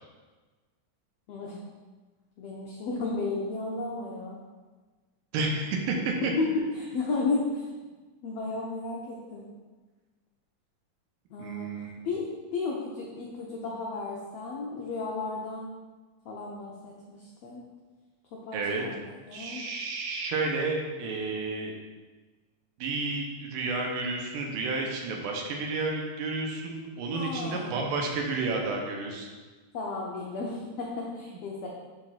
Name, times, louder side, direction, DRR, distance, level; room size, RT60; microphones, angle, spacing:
voice 1, 2.4-4.4 6.4-6.5 6.8-7.6 8.2-9.4 11.3-15.7 16.2-17.6 18.3-19.6 27.1-27.9 29.7-31.7, left 3 dB, 85° left, -3 dB, 1.4 m, -34 dB
voice 2, 5.3-6.1 11.4-11.9 18.5-18.8 19.3-21.7 22.8-29.3, right 3 dB, 85° right, 1 dB, 2.4 m, -31 dB
10.5 x 4.0 x 2.4 m, 1.3 s
omnidirectional pair, 3.8 m